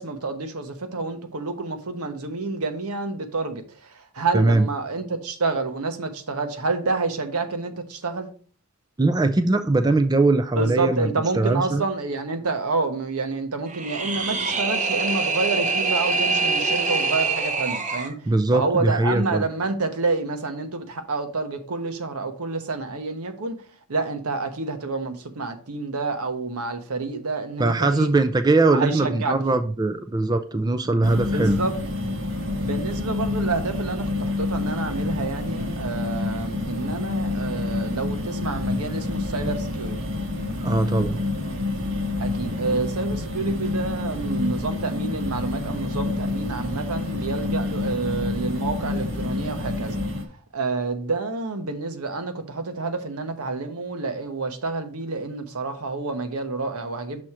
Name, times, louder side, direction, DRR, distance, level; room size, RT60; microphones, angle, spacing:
voice 1, 0.0-8.3 10.5-23.5 23.9-28.1 28.7-29.4 30.8-31.7 32.6-39.9 42.2-50.0 50.5-57.2, right 3 dB, 90° right, 1.0 m, -28 dB
voice 2, 4.3-4.7 9.0-11.8 18.3-19.5 27.6-31.6 40.6-41.2, right 2 dB, 20° right, 0.3 m, -21 dB
sound 1, 13.7-18.1, right 4 dB, 35° right, 0.8 m, -24 dB
sound 2, 31.0-50.3, left 2 dB, 60° right, 1.2 m, -28 dB
6.3 x 4.3 x 4.8 m
head